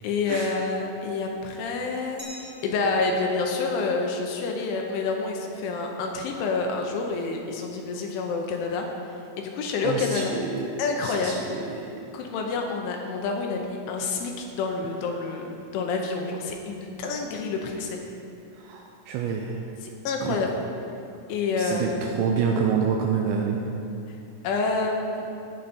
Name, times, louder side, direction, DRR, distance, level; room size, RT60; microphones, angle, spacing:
voice 1, 0.0-8.9 9.4-10.4 10.8-11.5 12.1-18.0 19.8-20.6 21.3-22.2 24.4-25.3, left 4 dB, 80° left, 2 dB, 3.0 m, -28 dB
Glass, 2.2-4.9, equal, 50° right, 0.7 m, -48 dB
voice 2, 9.8-10.7 11.0-11.4 11.7-11.9 18.6-19.6 20.2-20.4 21.6-23.6, right 6 dB, 85° right, 1 dB, 2.7 m, -27 dB
18.0 x 6.7 x 4.3 m, 2.7 s
omnidirectional pair, 5.9 m